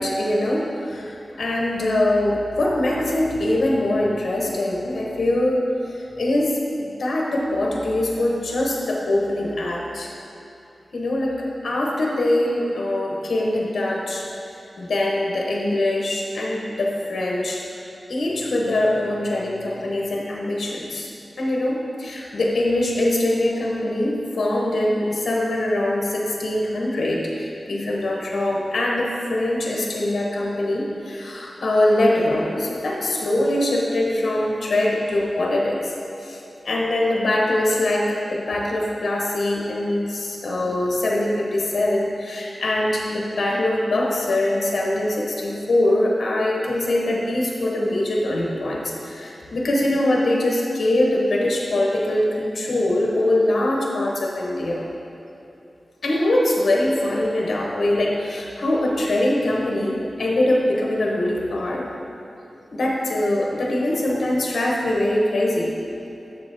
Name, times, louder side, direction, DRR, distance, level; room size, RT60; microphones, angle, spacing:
voice 1, 0.0-5.7 6.2-10.1 10.9-14.3 14.8-17.6 18.1-21.1 21.4-35.9 36.2-54.8 56.0-61.9 62.7-65.7, left 1 dB, 75° left, -2 dB, 1.0 m, -23 dB
7.0 x 6.8 x 3.4 m, 2.8 s
wide cardioid pair, 100°, 0 cm